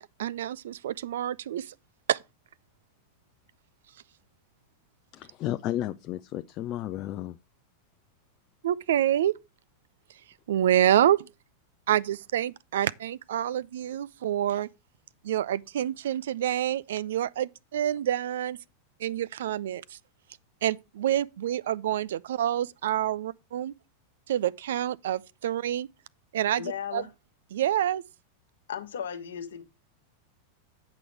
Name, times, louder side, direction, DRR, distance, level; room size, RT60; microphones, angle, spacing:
voice 1, 0.0-1.7 2.1-2.2 8.6-9.3 10.5-11.3 11.9-14.7 15.2-18.6 19.0-19.8 20.6-23.7 24.3-25.9 26.3-27.0 27.5-28.0, right 11 dB, 60° right, 0.4 m, -27 dB
voice 2, 5.1-7.4, left 13 dB, 35° left, 0.4 m, -33 dB
voice 3, 26.6-27.1 28.7-29.6, left 8 dB, 60° left, 1.1 m, -35 dB
8.5 x 6.1 x 4.6 m
figure-of-eight pair, 90°, 0 cm